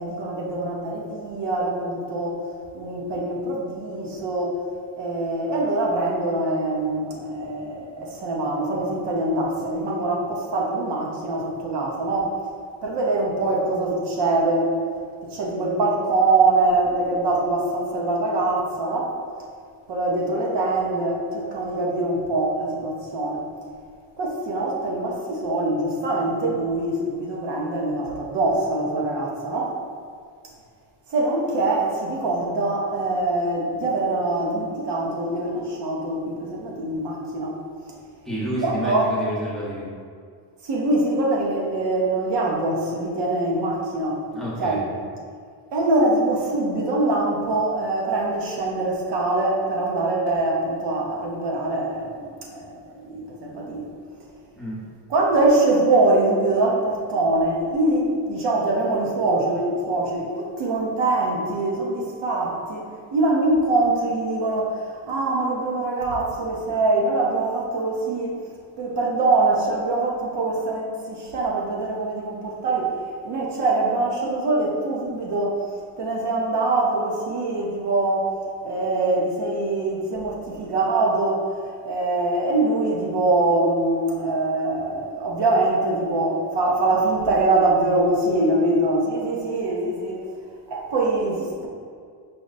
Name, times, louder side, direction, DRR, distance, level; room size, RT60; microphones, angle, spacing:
voice 1, 0.0-2.5 2.7-4.6 4.9-12.3 12.8-14.7 15.3-19.1 19.9-23.5 24.2-29.8 31.1-37.6 38.6-39.1 40.6-44.2 44.6-44.8 45.7-53.9 55.1-62.9 63.1-68.3 68.8-72.9 73.2-75.6 76.0-78.3 78.6-81.5 81.8-90.2 90.7-91.7, right 2 dB, 65° right, -3 dB, 0.9 m, -23 dB
voice 2, 38.2-39.9 44.3-44.8 54.6-54.8, equal, ahead, -8 dB, 1.0 m, -29 dB
5.0 x 2.3 x 4.0 m, 2.1 s
cardioid pair, 140°, 44 cm